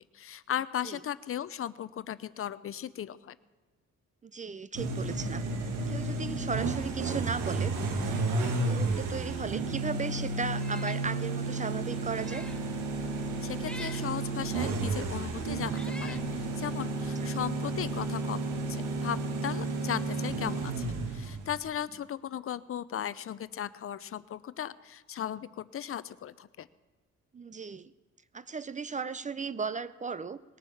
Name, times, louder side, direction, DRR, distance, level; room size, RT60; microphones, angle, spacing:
voice 1, 0.1-3.3 13.4-18.4 18.7-26.7, left 10 dB, 45° left, 16 dB, 0.6 m, -37 dB
voice 2, 4.2-5.4 5.9-7.7 8.6-12.5 17.2-17.3 27.3-27.9 28.3-30.4, right 5 dB, 25° right, 17 dB, 0.5 m, -36 dB
sound 1, 4.7-21.6, right 3 dB, 85° right, 1.7 m, -32 dB
Meow, 10.5-11.0 11.5-11.6 12.1-12.6 13.6-14.1 15.0-15.1 15.7-16.3, left 1 dB, 5° left, 0.8 m, -46 dB
19.5 x 7.0 x 7.1 m, 1.3 s
cardioid pair, 90°, 30 cm